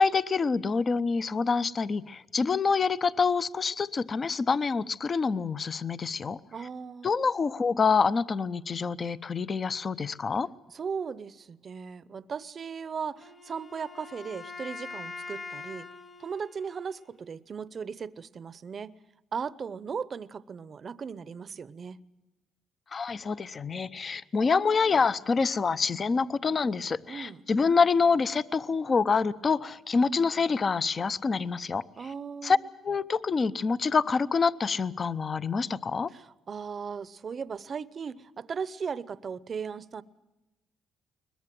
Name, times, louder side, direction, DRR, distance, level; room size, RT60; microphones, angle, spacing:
voice 1, 0.0-6.4 7.0-10.5 22.9-31.8 32.4-32.6 32.8-36.1, left 5 dB, 40° left, 0.7 m, -26 dB
voice 2, 6.5-7.1 10.7-15.9 16.2-19.0 19.3-22.0 27.1-27.5 32.0-32.7 36.1-40.0, right 6 dB, 45° right, 0.7 m, -37 dB
Wind instrument woodwind instrument, 13.2-17.2, left 3 dB, 20° left, 1.3 m, -43 dB
22.0 x 20.5 x 7.6 m
cardioid pair, 90°, 0 cm